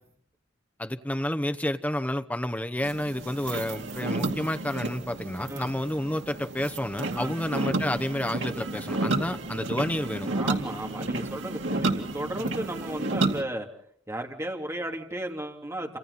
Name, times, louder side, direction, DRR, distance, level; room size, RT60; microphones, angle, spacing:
voice 1, 0.8-10.3, left 1 dB, 10° left, 0.9 m, -30 dB
sound 1, 2.8-13.4, right 2 dB, 80° right, 2.4 m, -31 dB
voice 2, 10.3-13.7 14.1-16.0, right 1 dB, 15° right, 3.1 m, -34 dB
28.5 x 26.5 x 4.2 m
head